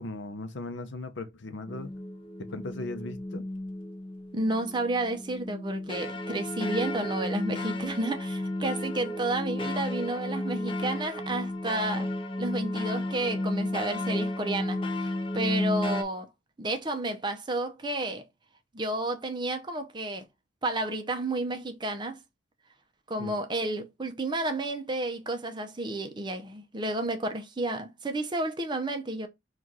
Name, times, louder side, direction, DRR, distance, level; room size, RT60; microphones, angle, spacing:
voice 1, 0.0-1.9 2.4-3.4 23.2-23.4, left 2 dB, 70° left, 0.6 m, -38 dB
sound 1, 1.7-16.0, left 1 dB, 30° left, 0.5 m, -33 dB
voice 2, 4.3-12.1 12.4-16.3 16.6-18.2 18.7-20.3 20.6-22.2 23.1-29.3, right 2 dB, 25° right, 0.6 m, -31 dB
4.0 x 2.4 x 4.6 m
head